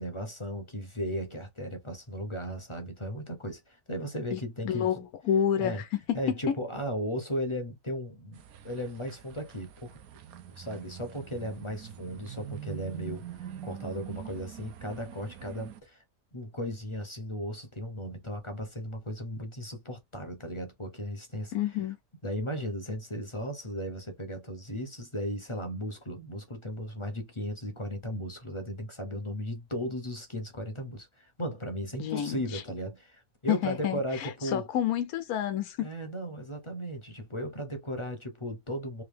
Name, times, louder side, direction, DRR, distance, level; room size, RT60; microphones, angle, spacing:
voice 1, 0.0-5.0 5.6-5.8 6.1-10.0 10.5-16.0 16.3-21.8 22.2-34.7 35.8-39.0, equal, 25° left, 0.7 m, -36 dB
voice 2, 4.3-6.2 6.5-6.6 21.5-22.0 32.0-32.6 33.5-35.9, left 10 dB, 75° left, 1.2 m, -29 dB
sound 1, 8.3-15.8, right 10 dB, 75° right, 1.1 m, -44 dB
3.5 x 2.8 x 3.3 m
omnidirectional pair, 1.6 m